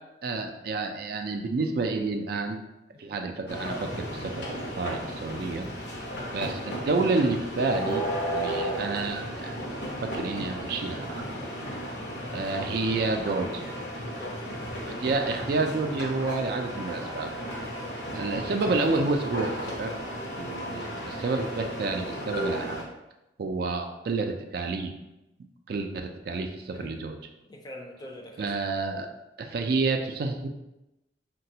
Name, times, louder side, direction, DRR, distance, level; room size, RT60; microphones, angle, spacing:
voice 1, 0.2-2.6 3.0-5.7 6.3-8.0 8.3-9.5 10.1-11.3 12.3-13.7 15.0-17.3 18.1-19.9 20.4-22.8 23.4-24.9 25.7-27.2 28.4-29.1 29.4-30.5, right 3 dB, 60° right, 5 dB, 0.3 m, -29 dB
sound 1, 3.5-22.8, equal, 75° left, 0.7 m, -34 dB
voice 2, 5.9-6.3 11.6-11.9 14.2-14.6 17.6-17.9 20.4-20.7 26.7-27.0 27.5-28.5, left 1 dB, 25° left, 1 dB, 0.4 m, -45 dB
3.9 x 2.2 x 2.7 m, 0.94 s
head